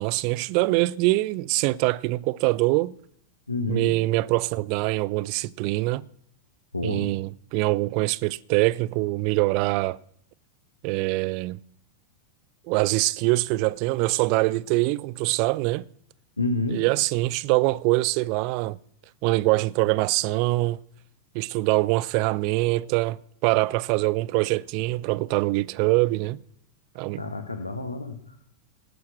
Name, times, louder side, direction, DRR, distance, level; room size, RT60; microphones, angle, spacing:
voice 1, 0.0-3.0 3.7-6.0 6.8-10.0 10.8-11.6 12.7-15.8 16.7-18.8 19.2-20.8 21.3-26.4 27.0-27.3, right 20 dB, 45° right, 0.4 m, -24 dB
voice 2, 3.5-3.9 6.7-7.1 16.4-16.8 27.1-28.4, left 2 dB, 80° left, 1.2 m, -29 dB
19.0 x 6.4 x 6.1 m
figure-of-eight pair, 90°, 0 cm